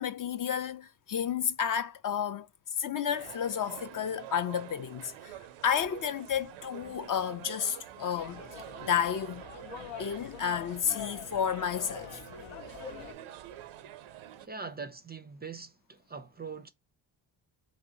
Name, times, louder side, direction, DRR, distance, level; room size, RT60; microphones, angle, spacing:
voice 1, 0.0-2.5 2.8-8.4 8.8-9.4 10.0-12.2, left 8 dB, 45° left, 0.4 m, -31 dB
sound 1, 3.1-14.5, right 11 dB, 85° right, 0.5 m, -47 dB
sound 2, 8.1-13.1, left 8 dB, 80° left, 0.7 m, -45 dB
voice 2, 14.4-16.7, right 5 dB, 20° right, 0.4 m, -42 dB
3.0 x 2.8 x 2.6 m
supercardioid pair, 60°, 47 cm